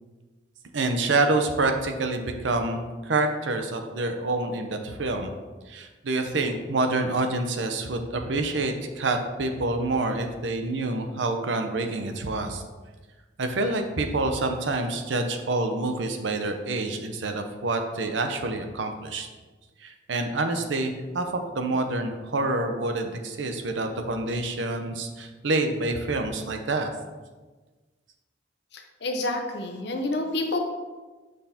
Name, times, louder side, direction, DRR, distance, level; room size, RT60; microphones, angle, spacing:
voice 1, 0.7-5.3 5.7-12.6 13.4-19.3 19.8-26.9, right 2 dB, 90° right, 6 dB, 0.7 m, -27 dB
voice 2, 29.0-30.6, left 2 dB, 65° left, 3 dB, 0.8 m, -28 dB
6.4 x 5.7 x 2.8 m, 1.3 s
head